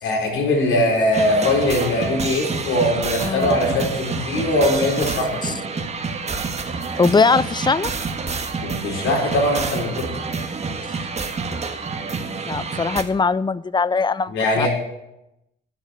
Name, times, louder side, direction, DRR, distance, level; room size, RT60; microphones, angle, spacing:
voice 1, 0.0-5.3 6.9-7.1 8.6-10.1 14.3-14.7, left 1 dB, 80° left, 4.4 m, -21 dB
sound 1, 1.1-13.0, right 4 dB, 35° right, 1.5 m, -28 dB
voice 2, 3.2-3.6 5.4-5.5 7.0-7.9 12.5-14.7, left 4 dB, 20° left, 0.5 m, -20 dB
11.0 x 7.6 x 8.6 m
cardioid pair, 90°, 20 cm